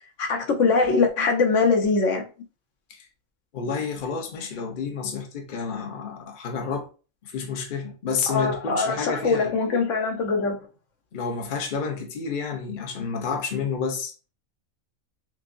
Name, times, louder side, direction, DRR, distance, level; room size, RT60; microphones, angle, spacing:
voice 1, 0.2-2.2 8.3-10.6, left 4 dB, 65° left, 1.2 m, -22 dB
voice 2, 3.5-6.9 7.2-9.6 11.1-14.1, left 5 dB, 45° left, 0.8 m, -30 dB
6.0 x 2.3 x 2.5 m
omnidirectional pair, 1.4 m